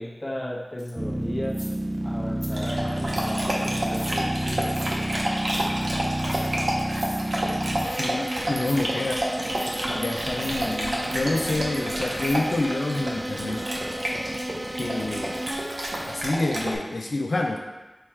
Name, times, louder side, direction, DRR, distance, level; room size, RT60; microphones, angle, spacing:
voice 1, 0.0-1.6 2.0-4.7, left 1 dB, 25° left, -4 dB, 0.9 m, -34 dB
sound 1, 0.8-0.9 1.5-2.0 2.4-2.5 3.1-3.4 3.8-4.2 4.7-5.0 5.4-5.7 6.1-6.5 6.9-7.2 7.7-8.0 8.5-8.8 9.5-9.7 10.4-10.7 11.3-11.5 12.2-12.5 15.3-16.2, equal, ahead, 0.9 m, -43 dB
sound 2, 1.0-16.3, right 1 dB, 25° right, 0.3 m, -31 dB
Dog, 2.5-16.8, right 1 dB, 85° right, 0.7 m, -30 dB
voice 2, 7.9-9.2 9.9-13.6 14.8-15.4 16.0-17.6, left 2 dB, 85° left, 1 dB, 0.3 m, -28 dB
4.6 x 2.3 x 4.3 m, 1.1 s
wide cardioid pair, 65°, 0 cm